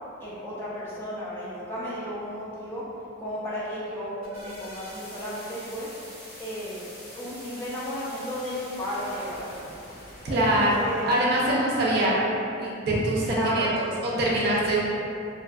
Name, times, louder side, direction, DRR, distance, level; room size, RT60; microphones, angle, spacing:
voice 1, 0.2-2.8 3.2-5.9 6.4-6.8 7.1-9.5 10.3-11.1 13.3-13.7, equal, 10° left, -9 dB, 0.4 m, -33 dB
sound 1, 4.1-11.2, equal, 40° left, 1.4 m, -45 dB
voice 2, 10.2-12.3 12.6-14.8, right 1 dB, 50° right, -5 dB, 0.4 m, -24 dB
2.7 x 2.3 x 2.4 m, 2.6 s
head